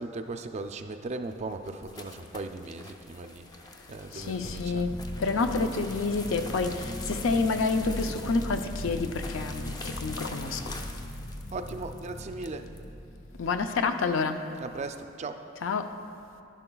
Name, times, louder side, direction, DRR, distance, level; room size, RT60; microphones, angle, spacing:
voice 1, 0.0-3.4 3.9-4.8 11.5-12.7 14.6-15.4, right 3 dB, 35° right, 7 dB, 0.4 m, -37 dB
sound 1, 1.1-12.8, left 2 dB, 20° left, 0.5 m, -45 dB
voice 2, 4.1-10.7 13.4-14.4 15.6-15.9, left 4 dB, 80° left, 7 dB, 0.5 m, -28 dB
sound 2, 4.1-13.9, equal, 40° left, 1.5 m, -39 dB
11.0 x 10.5 x 2.3 m, 2.6 s
head